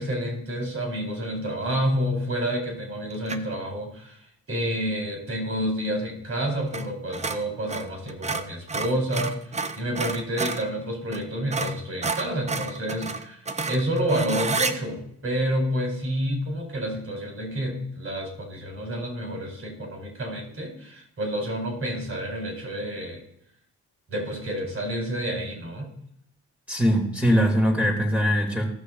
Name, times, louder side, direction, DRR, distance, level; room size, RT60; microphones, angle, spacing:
voice 1, 0.0-4.2 4.5-9.4 9.7-13.4 13.7-23.2 24.1-25.9, equal, 45° right, 2 dB, 4.6 m, -29 dB
sound 1, 3.3-3.6 6.7-6.9 7.1-10.7 11.1-11.2 11.5-14.8, right 3 dB, 20° right, 0.8 m, -30 dB
voice 2, 26.7-28.7, equal, 5° right, 0 dB, 2.7 m, -21 dB
15.0 x 6.2 x 4.0 m, 0.72 s
cardioid pair, 90°, 30 cm